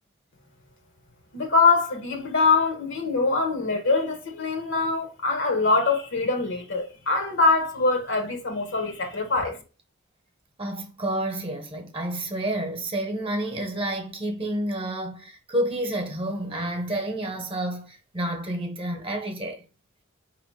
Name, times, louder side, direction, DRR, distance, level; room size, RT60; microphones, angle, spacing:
voice 1, 1.3-9.6, left 3 dB, 65° left, 1.1 m, -23 dB
voice 2, 10.6-19.6, right 1 dB, 25° right, 1.0 m, -29 dB
4.8 x 3.0 x 3.2 m
head